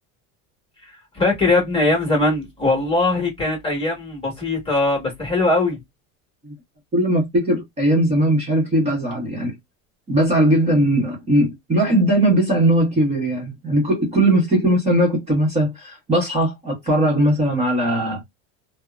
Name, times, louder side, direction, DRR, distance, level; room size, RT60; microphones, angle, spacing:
voice 1, 0.8-5.8, left 2 dB, 15° left, 1.2 m, -21 dB
voice 2, 6.9-9.5 10.1-18.2, right 1 dB, 15° right, 1.0 m, -19 dB
2.6 x 2.0 x 2.2 m
supercardioid pair, 155°, 38 cm